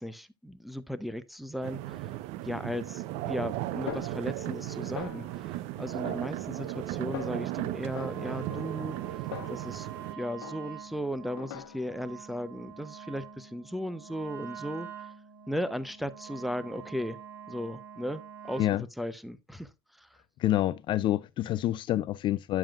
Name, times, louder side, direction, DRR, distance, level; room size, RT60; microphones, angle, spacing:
voice 1, 0.0-2.1 2.4-9.2 9.5-9.9 10.2-15.1 15.5-17.2 17.5-20.1, equal, ahead, 0.7 m, -36 dB
sound 1, 1.6-10.1, right 15 dB, 60° right, 0.6 m, -36 dB
Snare drum, 3.9-4.7 5.0-5.5 6.0-6.8 7.1-7.5 8.0-10.1 10.4-10.9 11.4-12.1, left 9 dB, 85° left, 1.1 m, -43 dB
Wind instrument woodwind instrument, 7.8-18.8, right 8 dB, 85° right, 2.8 m, -46 dB
voice 2, 20.4-22.6, left 14 dB, 40° left, 0.4 m, -27 dB
9.1 x 7.5 x 2.3 m
supercardioid pair, 105°, 12 cm